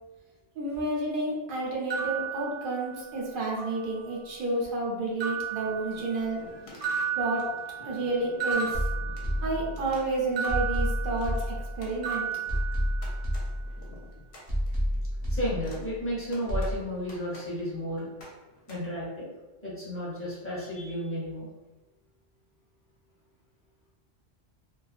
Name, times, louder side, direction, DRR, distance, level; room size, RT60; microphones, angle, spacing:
voice 1, 0.6-6.4 7.2-7.5 7.8-8.9 9.4-12.3, right 2 dB, 60° right, -3 dB, 0.7 m, -30 dB
sound 1, 1.9-3.2 3.6-4.3 5.2-6.5 6.8-9.8 10.4-11.7 12.0-13.4, right 7 dB, 85° right, 0.9 m, -34 dB
sound 2, 5.5-18.8, left 2 dB, 65° left, 0.8 m, -51 dB
sound 3, 8.7-10.0 10.5-12.0 12.5-14.0 14.5-16.0 16.5-16.7, equal, 35° right, 0.4 m, -30 dB
voice 2, 15.3-18.1 18.7-19.3 19.6-21.5, equal, 15° left, -8 dB, 0.6 m, -33 dB
2.3 x 2.2 x 2.4 m, 1.1 s
omnidirectional pair, 1.1 m